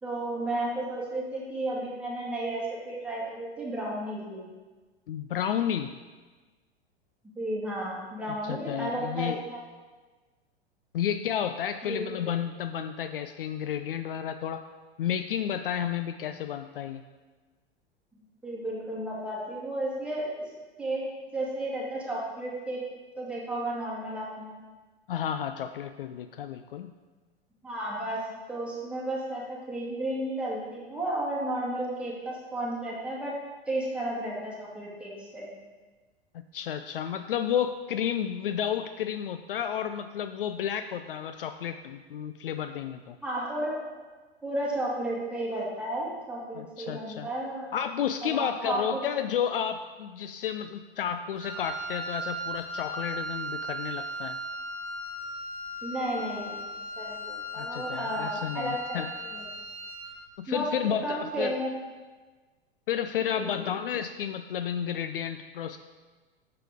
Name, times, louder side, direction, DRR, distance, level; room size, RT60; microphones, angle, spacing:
voice 1, 0.0-4.5 7.4-9.6 11.8-12.1 18.4-20.3 20.8-21.0 21.3-22.8 23.2-24.6 27.6-28.2 28.5-33.3 33.7-35.5 43.2-43.9 44.4-47.7 48.2-49.0 55.8-56.7 57.0-59.5 60.5-61.7 63.3-63.7, right 1 dB, 5° right, -5 dB, 2.1 m, -33 dB
voice 2, 5.1-5.9 8.4-9.4 10.9-14.6 15.0-17.0 25.1-26.9 36.3-43.2 46.5-47.3 47.7-54.4 57.6-59.1 60.4-61.6 62.9-65.8, left 9 dB, 60° left, 9 dB, 0.4 m, -31 dB
Wind instrument woodwind instrument, 51.4-60.3, equal, 45° right, 1.1 m, -37 dB
8.7 x 6.7 x 3.6 m, 1.3 s
figure-of-eight pair, 90°, 32 cm